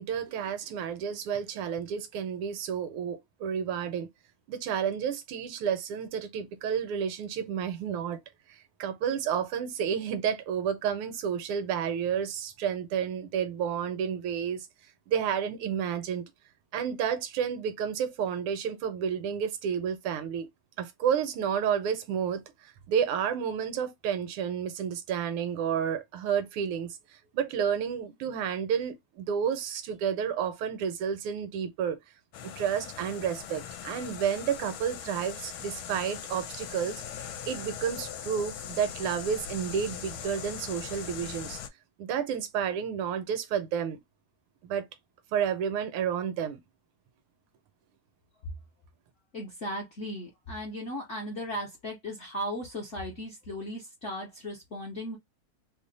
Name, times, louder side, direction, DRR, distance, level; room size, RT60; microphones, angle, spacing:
voice 1, 0.0-4.1 4.5-8.2 8.8-14.7 15.1-16.3 16.7-20.5 20.8-27.0 27.3-32.0 32.4-37.0 37.5-41.6 42.0-44.0 44.6-44.8 45.3-46.6, right 8 dB, 85° right, 1.6 m, -31 dB
sound 1, 32.3-41.7, left 9 dB, 80° left, 1.4 m, -40 dB
voice 2, 49.3-55.2, equal, 60° left, 0.7 m, -36 dB
3.5 x 2.1 x 3.9 m
omnidirectional pair, 2.3 m